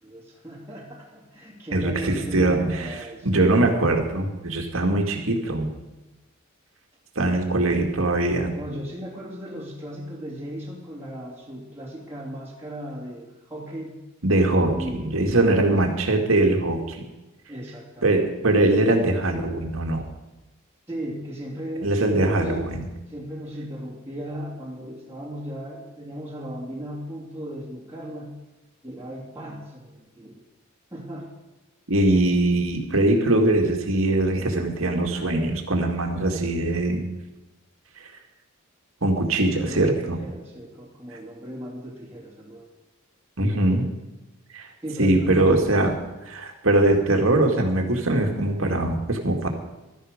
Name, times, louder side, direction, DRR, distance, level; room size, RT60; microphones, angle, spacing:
voice 1, 0.0-3.3 8.5-14.0 14.7-16.0 17.5-18.2 20.9-22.6 23.1-28.4 28.8-30.4 30.9-31.3 39.4-42.7 43.7-43.9 44.8-45.9, equal, 10° right, -6 dB, 2.7 m, -37 dB
voice 2, 1.7-5.7 7.2-8.5 14.2-17.0 18.0-20.1 21.8-22.9 31.9-37.0 39.0-40.0 43.4-43.8 44.5-44.7 45.0-45.9 46.3-49.5, right 2 dB, 70° right, 3 dB, 2.3 m, -22 dB
16.0 x 12.5 x 5.2 m, 1.0 s
head